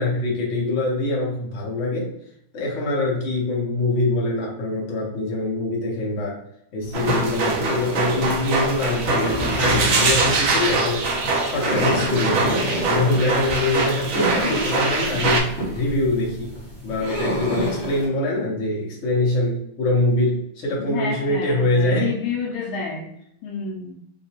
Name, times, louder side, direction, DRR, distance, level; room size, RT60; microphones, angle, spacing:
voice 1, 0.0-2.1 2.5-6.4 6.7-11.1 11.4-12.6 12.9-16.5 16.8-22.2, left 2 dB, 50° left, -3 dB, 0.9 m, -24 dB
sound 1, 6.8-18.1, equal, 10° left, 0.7 m, -29 dB
sound 2, 6.9-15.4, right 3 dB, 75° right, 1.4 m, -23 dB
voice 2, 20.8-23.1 23.4-23.9, left 5 dB, 75° left, 0 dB, 1.3 m, -29 dB
3.9 x 2.2 x 2.8 m, 0.76 s
omnidirectional pair, 2.3 m